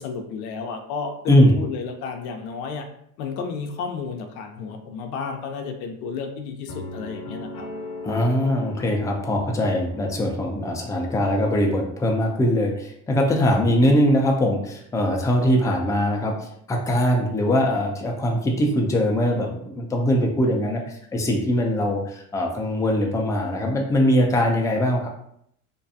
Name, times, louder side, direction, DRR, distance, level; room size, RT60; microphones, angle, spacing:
voice 1, 0.0-2.9 3.2-7.7, left 5 dB, 80° left, 5 dB, 0.6 m, -32 dB
sound 1, 6.7-10.8, left 2 dB, 55° left, 0.8 m, -38 dB
voice 2, 8.0-25.1, equal, 10° left, 0 dB, 0.4 m, -21 dB
2.6 x 2.2 x 2.6 m, 0.70 s
hypercardioid pair, 80°, 43 cm